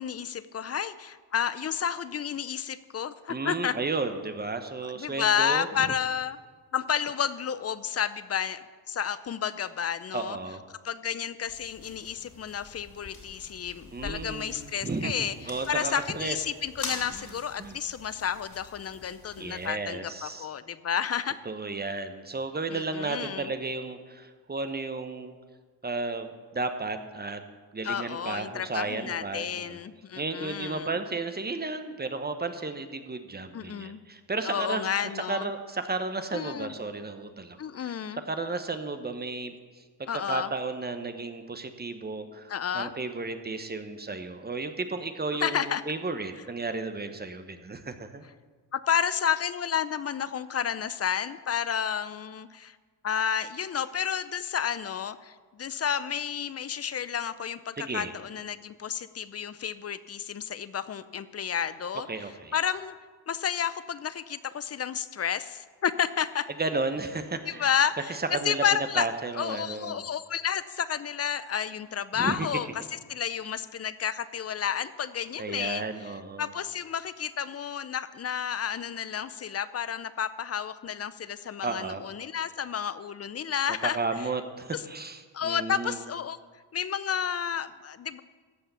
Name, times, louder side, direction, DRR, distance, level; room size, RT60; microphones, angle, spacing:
voice 1, 0.0-3.7 4.8-6.4 6.7-10.4 10.8-15.4 15.7-21.4 22.7-23.5 27.8-30.9 33.5-34.0 34.4-35.5 36.3-36.7 37.6-38.2 40.1-40.5 42.5-42.9 45.4-45.8 48.7-52.8 53.0-62.1 62.5-62.9 63.3-66.5 67.5-69.1 69.3-72.8 73.1-75.8 76.4-84.0 84.7-84.8 85.3-86.4 86.7-88.2, left 8 dB, 35° left, 15 dB, 0.6 m, -31 dB
voice 2, 3.3-5.9 10.1-10.6 13.9-15.1 15.4-16.4 17.6-17.8 19.4-20.5 21.4-25.4 25.8-27.4 27.7-29.8 30.2-34.8 35.1-37.9 38.2-39.5 40.0-48.2 57.8-58.1 62.1-62.5 66.6-67.7 68.3-68.6 68.9-70.1 72.2-72.5 75.4-76.5 81.6-82.0 83.8-86.0, right 3 dB, 20° right, 8 dB, 1.0 m, -33 dB
sound 1, 11.5-19.7, left 3 dB, 55° left, 3.2 m, -44 dB
14.5 x 5.6 x 6.9 m, 1.5 s
supercardioid pair, 70°, 43 cm